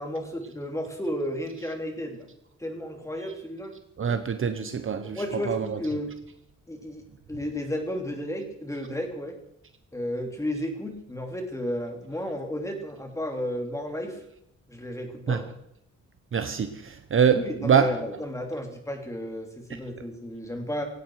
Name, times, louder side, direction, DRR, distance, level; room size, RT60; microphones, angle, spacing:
voice 1, 0.0-2.3 2.6-3.7 5.0-6.1 6.7-7.0 7.3-9.3 9.9-14.2 14.7-15.5 17.3-20.8, equal, 10° left, 3 dB, 3.0 m, -33 dB
voice 2, 4.0-5.8 15.3-15.4 16.3-17.9, right 7 dB, 40° right, 8 dB, 1.0 m, -24 dB
17.5 x 17.0 x 4.8 m, 0.74 s
wide cardioid pair, 155°, 31 cm